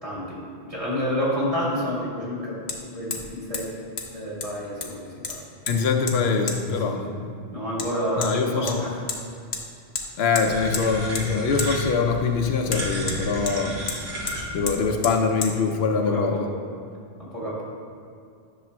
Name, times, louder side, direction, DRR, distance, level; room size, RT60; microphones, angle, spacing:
voice 1, 0.0-2.6 2.9-3.7 4.1-5.4 6.6-7.2 7.5-8.9 13.6-13.8 14.5-14.6 16.0-16.6 17.2-17.6, equal, 35° right, -8 dB, 2.0 m, -29 dB
Hammer, 0.8-0.9 2.7-2.8 3.1-3.3 3.5-3.7 4.0-4.1 4.4-5.0 5.2-5.8 6.1-6.2 6.5-6.6 7.8-7.9 8.2-8.3 8.7-9.2 9.5-9.6 9.9-10.1 10.3-10.9 11.1-11.3 11.6-11.7 12.7-13.6 13.9-14.0 14.3-14.4 14.7-14.8 15.0-15.2 15.4-15.5, left 5 dB, 50° left, 0.7 m, -31 dB
voice 2, 5.7-7.0 8.2-8.7 10.2-13.8 14.5-16.5, left 5 dB, 80° left, 4 dB, 0.8 m, -23 dB
sound 1, 10.4-14.9, right 1 dB, 80° right, 1.2 m, -34 dB
10.0 x 6.2 x 2.2 m, 2.3 s
omnidirectional pair, 1.1 m